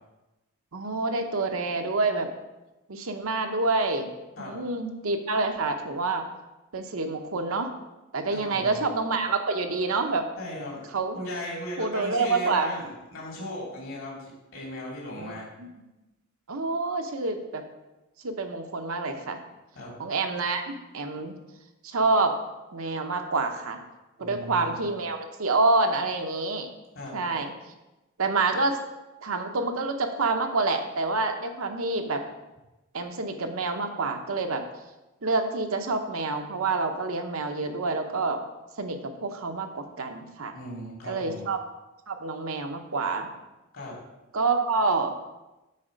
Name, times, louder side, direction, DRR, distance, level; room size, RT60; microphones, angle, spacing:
voice 1, 0.7-2.3 2.9-4.1 4.4-6.3 6.7-7.7 8.1-10.3 10.9-11.2 11.8-12.8 15.2-15.3 15.6-15.7 16.5-17.6 18.2-19.4 20.0-21.4 21.8-22.4 22.7-23.8 24.2-26.7 27.1-27.5 28.2-28.8 29.2-32.2 32.9-34.6 35.2-38.4 38.8-40.5 41.1-41.6 42.1-43.3 44.3-45.1, right 3 dB, 70° right, 5 dB, 0.8 m, -27 dB
voice 2, 8.3-8.8 10.4-10.8 11.1-14.2 14.5-15.5 19.7-20.0 24.2-24.8 26.9-27.2 40.5-41.4 43.7-43.9, left 1 dB, 65° left, -4 dB, 2.9 m, -37 dB
8.5 x 4.3 x 5.1 m, 1.0 s
head